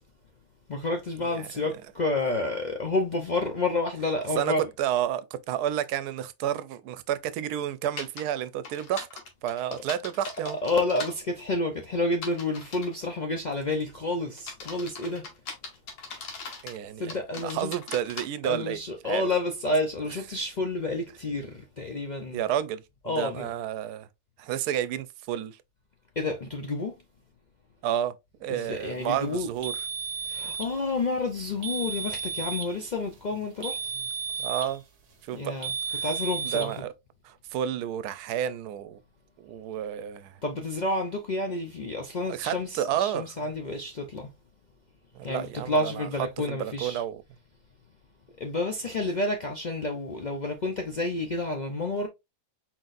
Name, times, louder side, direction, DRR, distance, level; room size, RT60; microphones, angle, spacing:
voice 1, 0.7-4.6 10.6-15.3 17.0-17.7 18.4-22.4 23.1-23.5 26.2-26.9 28.5-29.5 30.3-33.8 35.3-35.7 36.0-36.7 40.4-44.3 45.2-47.0 48.4-52.1, left 2 dB, 65° left, 0.4 m, -29 dB
voice 2, 1.2-1.8 4.4-9.1 9.4-10.6 16.6-17.1 17.4-19.3 20.1-20.4 22.3-24.1 24.4-25.6 27.8-28.2 28.4-29.8 33.9-34.1 34.4-34.8 35.2-35.5 35.9-36.1 36.4-36.9 37.2-39.0 39.4-40.4 42.3-43.5 45.1-47.2, right 10 dB, 90° right, 1.1 m, -31 dB
sound 1, 8.0-8.2 8.6-11.1 12.1-12.9 13.5-13.8 14.4-16.8 17.1-18.2, left 4 dB, 85° left, 1.7 m, -39 dB
sound 2, 29.6-30.7 31.6-32.7 33.6-34.8 35.6-36.7, right 6 dB, 55° right, 1.3 m, -33 dB
4.5 x 4.0 x 2.5 m
omnidirectional pair, 1.6 m